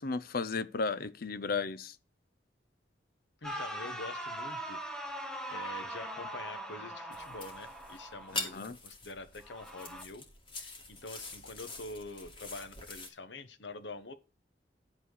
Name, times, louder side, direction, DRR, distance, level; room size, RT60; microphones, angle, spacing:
voice 1, 0.0-2.0 8.3-8.8, left 4 dB, 55° left, 0.6 m, -34 dB
voice 2, 3.4-4.8 5.5-10.2 10.6-14.1, left 2 dB, 90° left, 1.1 m, -45 dB
sound 1, 3.4-8.6 9.4-10.0, right 1 dB, 5° left, 1.3 m, -41 dB
sound 2, 7.1-13.1, left 2 dB, 30° left, 2.5 m, -44 dB
11.0 x 4.3 x 6.4 m
head